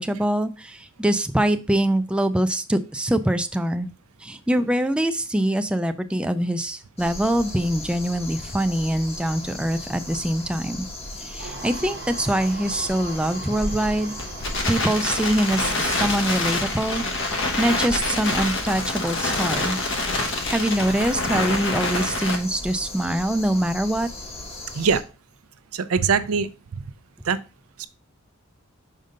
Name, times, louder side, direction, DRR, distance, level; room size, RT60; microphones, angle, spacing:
voice 1, 0.0-3.9 4.2-10.9 11.2-14.1 14.7-17.0 17.6-19.8 20.5-24.1, right 1 dB, 5° right, 8 dB, 0.3 m, -24 dB
sound 1, 7.0-25.0, left 2 dB, 30° left, 1.1 m, -37 dB
sound 2, 11.4-20.0, right 3 dB, 55° right, 0.9 m, -40 dB
Crackle, 13.1-22.4, left 2 dB, 60° left, 1.2 m, -27 dB
voice 2, 24.7-25.1 25.7-26.8 27.2-27.4 27.8-27.9, right 5 dB, 90° right, 13 dB, 0.5 m, -23 dB
5.4 x 5.1 x 3.7 m, 0.32 s
head